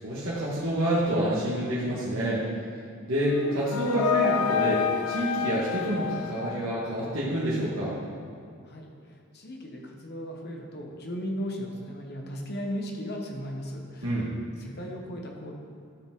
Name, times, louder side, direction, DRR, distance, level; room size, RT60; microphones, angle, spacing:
voice 1, 0.0-2.4 3.1-7.9 14.0-14.3, right 1 dB, 65° right, -8 dB, 1.6 m, -28 dB
sound 1, 3.2-7.1, left 8 dB, 90° left, 0.4 m, -29 dB
voice 2, 9.3-14.1 14.6-15.5, equal, 50° left, 1 dB, 1.2 m, -36 dB
13.0 x 5.0 x 3.8 m, 2.4 s
head